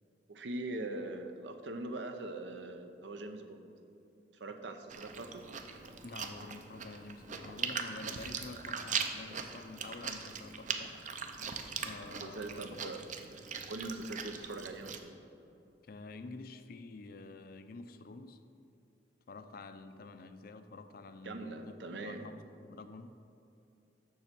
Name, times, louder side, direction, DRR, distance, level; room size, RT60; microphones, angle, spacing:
voice 1, 0.3-3.7 4.3-5.4 12.2-13.0 13.7-15.1 21.2-22.3, right 2 dB, 80° right, 6 dB, 0.7 m, -42 dB
Chewing mastication, 4.9-15.0, right 6 dB, 45° right, 0.6 m, -40 dB
voice 2, 6.0-11.0 11.8-12.9 15.8-18.4 19.3-23.2, left 3 dB, 55° left, 10 dB, 0.5 m, -48 dB
7.0 x 6.5 x 6.0 m, 2.7 s
head